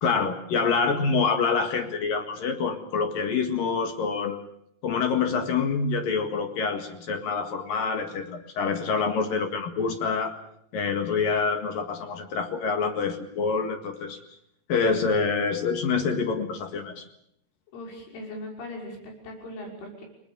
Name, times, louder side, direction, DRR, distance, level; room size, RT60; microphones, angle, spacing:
voice 1, 0.0-4.4 4.8-10.3 10.7-14.2 14.7-17.0, left 5 dB, 55° left, 6 dB, 3.0 m, -26 dB
voice 2, 17.7-20.0, left 1 dB, 70° left, 1 dB, 8.4 m, -39 dB
30.0 x 20.5 x 7.0 m, 0.72 s
omnidirectional pair, 5.7 m